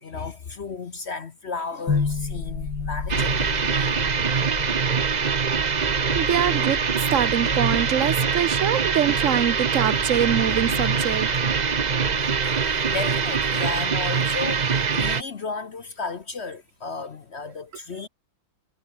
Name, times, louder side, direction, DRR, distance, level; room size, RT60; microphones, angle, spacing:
voice 1, 0.0-3.5 3.8-4.0 12.5-18.1, left 4 dB, 45° left, 0.9 m, -34 dB
sound 1, 1.9-13.9, left 4 dB, 65° left, 3.8 m, -33 dB
sound 2, 3.1-15.2, right 6 dB, 80° right, 0.4 m, -23 dB
voice 2, 5.8-11.3, right 10 dB, 55° right, 0.9 m, -24 dB
omnidirectional pair, 2.2 m